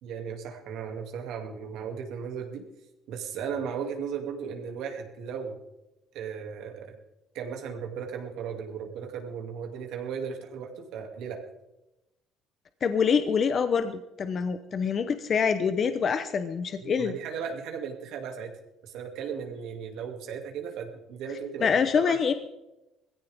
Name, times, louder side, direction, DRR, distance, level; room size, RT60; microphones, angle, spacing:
voice 1, 0.0-2.6 3.1-5.5 6.1-7.0 7.3-11.4 16.8-18.5 18.8-22.2, right 7 dB, 75° right, 3 dB, 2.6 m, -36 dB
voice 2, 12.8-17.1 21.6-22.3, left 6 dB, 40° left, 10 dB, 0.9 m, -25 dB
19.0 x 16.0 x 3.6 m, 0.93 s
cardioid pair, 130°, 0 cm